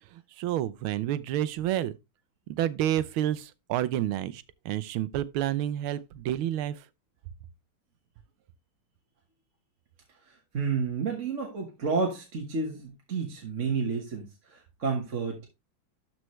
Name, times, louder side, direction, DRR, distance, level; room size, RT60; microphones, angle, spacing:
voice 1, 0.1-1.9 2.5-6.8, right 12 dB, 90° right, 1.5 m, -29 dB
voice 2, 10.3-15.5, right 5 dB, 40° right, 1.5 m, -31 dB
12.5 x 4.6 x 3.1 m
omnidirectional pair, 2.2 m